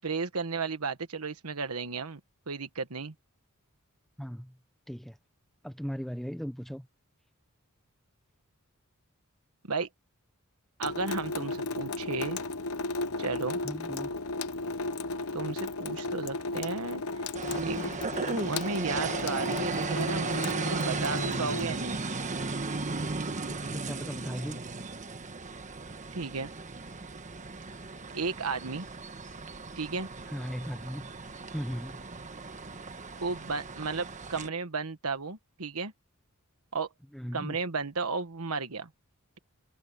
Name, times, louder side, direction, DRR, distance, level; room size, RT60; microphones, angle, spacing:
voice 1, 0.0-2.2 2.5-3.1 9.7-9.9 10.8-12.4 13.2-13.6 15.3-17.2 17.6-17.9 18.3-20.3 20.6-22.0 26.1-26.5 28.1-28.9 29.8-30.1 33.2-35.9 36.7-36.9 37.3-38.9, right 4 dB, 75° right, 1.4 m, -34 dB
voice 2, 4.2-4.5 4.9-5.2 5.6-6.9 13.6-14.1 23.5-24.6 30.3-31.1 31.5-32.0 37.1-37.6, equal, ahead, 0.8 m, -37 dB
Water tap faucet / Sink (filling or washing) / Drip, 10.8-21.6, left 3 dB, 70° left, 0.9 m, -35 dB
sound 1, 17.3-34.5, right 3 dB, 35° right, 1.3 m, -36 dB
head